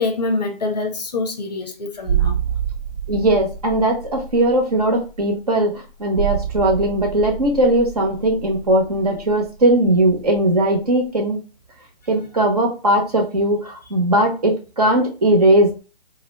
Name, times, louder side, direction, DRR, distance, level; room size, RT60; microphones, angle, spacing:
voice 1, 0.0-2.4, left 3 dB, 45° left, 0.6 m, -25 dB
sound 1, 2.0-10.5 10.7-10.9, right 8 dB, 90° right, 0.5 m, -28 dB
voice 2, 3.1-11.4 12.1-15.8, right 1 dB, 40° right, 0.8 m, -18 dB
2.7 x 2.1 x 3.9 m
hypercardioid pair, 165°, 31 cm